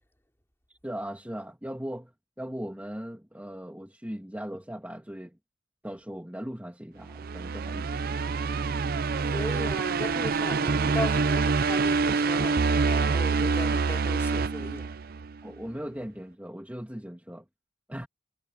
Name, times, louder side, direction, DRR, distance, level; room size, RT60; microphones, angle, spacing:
voice 1, 0.7-5.4 5.8-8.4 15.4-17.4 17.9-18.1, equal, 10° right, 2.6 m, -39 dB
sound 1, 7.1-15.4, right 4 dB, 55° right, 0.5 m, -26 dB
voice 2, 9.2-14.9, left 1 dB, 15° left, 4.3 m, -37 dB
head